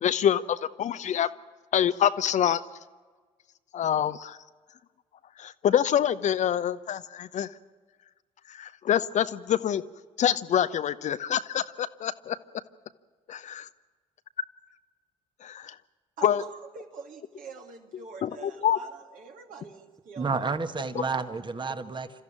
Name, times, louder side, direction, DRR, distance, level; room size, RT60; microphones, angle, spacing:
voice 1, 0.0-1.3 1.7-2.6 3.7-4.4 5.4-7.5 8.5-9.8 10.2-12.4 13.5-13.7 15.4-15.7 16.2-16.4 18.2-18.8, left 9 dB, 45° left, 13 dB, 0.8 m, -26 dB
voice 2, 16.2-20.5 20.8-21.3, right 5 dB, 55° right, 4 dB, 2.3 m, -45 dB
voice 3, 20.2-22.2, right 4 dB, 30° right, 10 dB, 1.6 m, -30 dB
28.5 x 14.0 x 8.8 m, 1.5 s
figure-of-eight pair, 45°, 16 cm